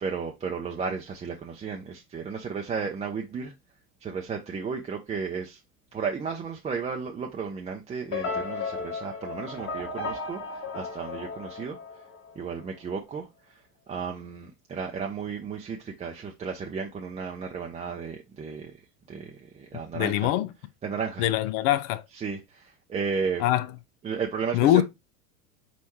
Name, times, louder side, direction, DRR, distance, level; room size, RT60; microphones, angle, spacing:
voice 1, 0.0-3.5 4.0-5.6 5.9-10.4 10.7-11.8 12.4-13.2 13.9-18.7 19.1-19.3 19.6-20.3 20.8-21.2 22.2-22.4 22.9-23.4 24.0-24.7, right 5 dB, 15° right, 0.5 m, -33 dB
sound 1, 8.1-12.4, left 4 dB, 25° left, 1.4 m, -34 dB
voice 2, 19.9-20.5 21.2-22.0 23.4-23.7 24.5-24.8, left 13 dB, 55° left, 0.5 m, -23 dB
4.2 x 3.6 x 3.0 m
hypercardioid pair, 100°, 45 cm